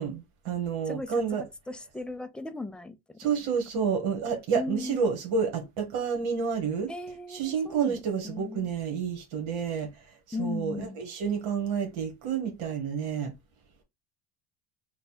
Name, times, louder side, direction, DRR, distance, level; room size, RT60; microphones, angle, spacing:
voice 1, 0.0-1.4 3.2-6.9 7.3-13.3, right 6 dB, 80° right, 1.4 m, -29 dB
voice 2, 0.9-1.4 1.7-3.0 4.5-5.0 6.9-8.7 10.3-11.0, left 3 dB, 5° left, 0.4 m, -37 dB
3.2 x 2.3 x 4.2 m
supercardioid pair, 105°, 29 cm